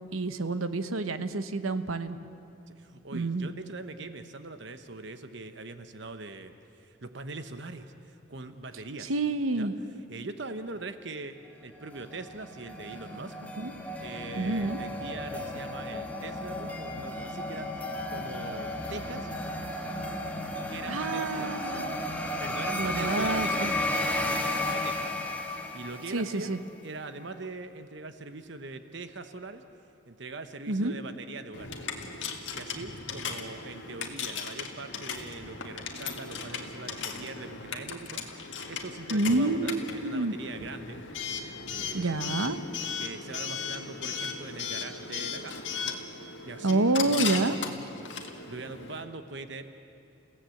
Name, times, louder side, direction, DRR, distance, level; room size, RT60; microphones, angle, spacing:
voice 1, 0.1-2.2 3.1-3.5 9.1-9.7 13.6-13.7 14.3-14.8 20.9-22.0 22.7-23.7 26.1-26.6 30.7-30.9 39.1-40.3 41.9-42.6 46.6-47.6, right 2 dB, 85° right, 10 dB, 1.1 m, -28 dB
voice 2, 2.7-9.1 9.5-9.7 10.1-13.3 14.0-19.3 20.7-21.9 22.4-25.1 25.7-26.6 26.8-29.6 30.1-31.7 32.5-38.2 38.7-41.0 41.7-42.2 43.0-47.8 48.5-49.8, right 3 dB, 60° right, 9 dB, 1.0 m, -42 dB
sound 1, 11.8-26.5, left 1 dB, 5° left, 1.5 m, -34 dB
Coin (dropping) / Alarm, 31.5-49.0, left 6 dB, 60° left, 2.0 m, -37 dB
30.0 x 16.5 x 7.8 m, 2.6 s
head